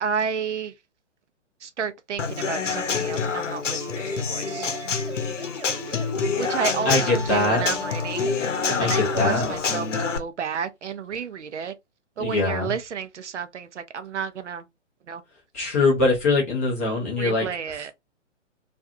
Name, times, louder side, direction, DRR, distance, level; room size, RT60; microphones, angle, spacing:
voice 1, 0.0-0.7 1.6-4.7 6.4-8.4 8.6-11.7 12.2-14.7 15.1-15.2 17.2-17.9, right 6 dB, 70° right, 0.6 m, -31 dB
Human voice / Acoustic guitar / Drum, 2.2-10.2, left 5 dB, 75° left, 0.7 m, -27 dB
sound 1, 3.8-8.9, right 2 dB, 25° right, 0.6 m, -39 dB
voice 2, 6.8-7.6 8.8-9.4 12.2-12.7 15.5-17.5, left 3 dB, 15° left, 0.4 m, -22 dB
2.5 x 2.3 x 2.6 m
figure-of-eight pair, 130°, 37 cm